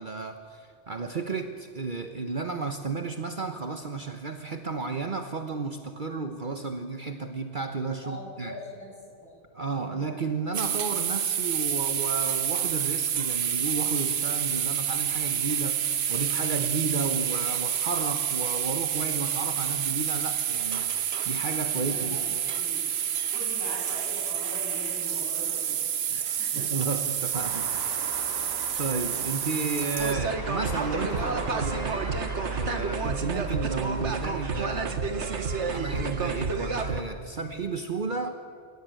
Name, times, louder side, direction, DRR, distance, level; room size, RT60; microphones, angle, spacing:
voice 1, 0.0-8.6 9.5-22.3 26.1-28.1 28.8-38.4, right 4 dB, 45° right, 6 dB, 1.2 m, -33 dB
voice 2, 8.0-8.9 9.2-9.3 9.9-10.1 21.8-22.2 22.5-22.9 23.3-25.8 26.4-26.7, left 1 dB, 15° left, -3 dB, 7.7 m, -41 dB
sound 1, 10.5-30.1, right 9 dB, 65° right, 1.0 m, -29 dB
sound 2, 27.3-35.0, equal, 20° right, 4.8 m, -41 dB
sound 3, 30.0-37.0, right 4 dB, 80° right, 1.8 m, -30 dB
29.0 x 16.5 x 9.1 m, 2.2 s
omnidirectional pair, 1.2 m